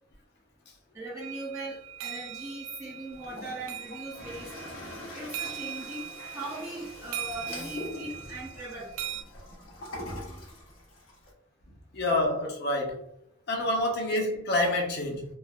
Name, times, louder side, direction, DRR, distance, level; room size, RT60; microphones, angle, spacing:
voice 1, 0.9-4.5 5.1-9.0, right 1 dB, 15° right, 0.5 m, -39 dB
sound 1, 1.2-9.2, right 10 dB, 85° right, 0.3 m, -40 dB
Toilet flush, 3.1-11.3, left 1 dB, 90° left, 1.1 m, -43 dB
voice 2, 11.9-13.0 13.5-15.3, left 1 dB, 55° left, 0.7 m, -27 dB
3.2 x 2.4 x 2.3 m
head